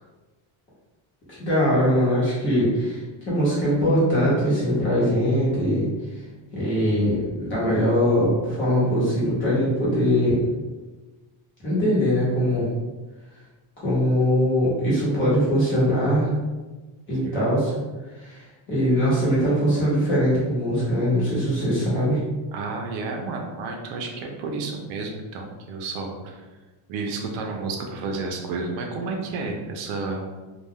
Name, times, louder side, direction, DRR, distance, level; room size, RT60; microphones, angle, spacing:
voice 1, 1.3-5.9 6.5-10.4 11.6-12.7 13.8-16.3 17.1-17.7 18.2-22.2, equal, 25° left, -8 dB, 0.9 m, -22 dB
voice 2, 17.1-17.5 22.5-26.4 26.9-30.2, right 3 dB, 70° right, 2 dB, 0.6 m, -31 dB
2.3 x 2.2 x 3.4 m, 1.2 s
cardioid pair, 170°, 49 cm